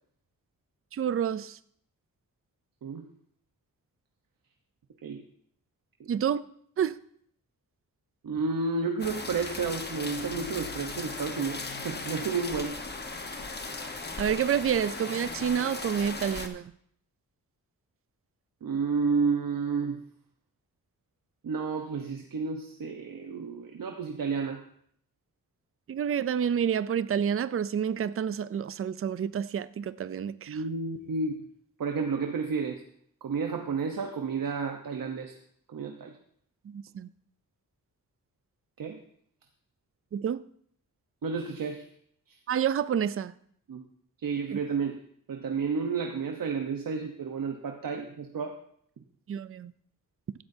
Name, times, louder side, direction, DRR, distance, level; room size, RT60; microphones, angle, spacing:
voice 1, 0.9-1.6 6.1-6.4 6.8-7.0 14.2-16.7 25.9-30.6 36.7-37.1 40.1-40.4 42.5-43.3 44.5-44.6 49.3-49.7, right 8 dB, 40° right, 15 dB, 0.4 m, -29 dB
voice 2, 8.2-12.8 18.6-20.0 21.4-24.6 30.5-31.3 31.8-32.8 33.2-35.3 35.7-36.2 38.8-39.0 41.2-41.8 42.3-42.4 43.7-43.9 44.2-48.6, right 5 dB, 75° right, 3 dB, 1.0 m, -31 dB
sound 1, 9.0-16.5, left 3 dB, 30° left, 1.1 m, -37 dB
15.5 x 12.5 x 2.7 m, 0.65 s
wide cardioid pair, 130°, 34 cm